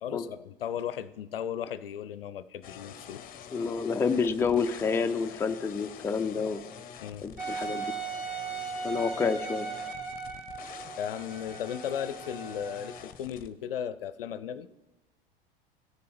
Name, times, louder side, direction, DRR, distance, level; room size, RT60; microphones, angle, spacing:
voice 1, 0.0-3.3 7.0-7.2 11.0-14.7, left 9 dB, 70° left, 14 dB, 0.5 m, -36 dB
sound 1, 2.6-13.5, left 9 dB, 30° left, 0.8 m, -46 dB
voice 2, 3.5-6.6 7.2-7.9 8.8-9.7, left 5 dB, 10° left, 7 dB, 0.4 m, -28 dB
Wind instrument woodwind instrument, 7.4-13.0, right 5 dB, 30° right, 3.3 m, -38 dB
17.0 x 6.8 x 3.4 m, 1.1 s
figure-of-eight pair, 80°, 29 cm